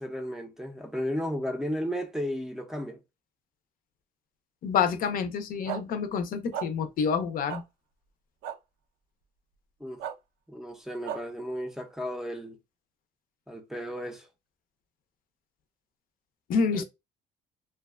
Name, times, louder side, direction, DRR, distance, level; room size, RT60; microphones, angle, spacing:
voice 1, 0.0-3.0 9.8-10.0 10.5-12.6 13.5-14.3 16.7-16.8, equal, 5° right, 0.5 m, -34 dB
voice 2, 4.6-7.6 16.5-16.8, left 6 dB, 55° left, 0.5 m, -28 dB
sound 1, 5.7-5.8 6.5-6.7 7.5-7.6 8.4-8.6 10.0-10.1 11.0-11.2, right 9 dB, 85° right, 0.5 m, -34 dB
2.5 x 2.2 x 2.3 m
cardioid pair, 110°, 17 cm